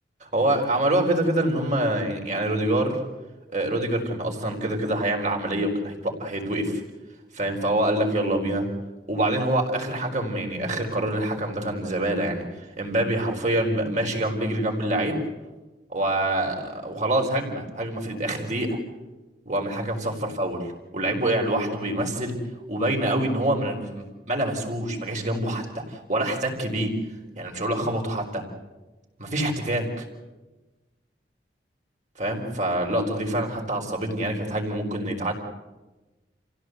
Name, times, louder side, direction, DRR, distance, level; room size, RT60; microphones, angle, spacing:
voice 1, 0.2-3.0 3.5-6.8 7.3-8.7 9.1-15.2 15.9-18.8 19.5-20.6 20.9-22.3 22.7-26.9 27.4-28.4 29.2-30.1 32.2-35.3, right 1 dB, 40° right, 1 dB, 4.4 m, -26 dB
28.5 x 16.5 x 8.0 m, 1.1 s
head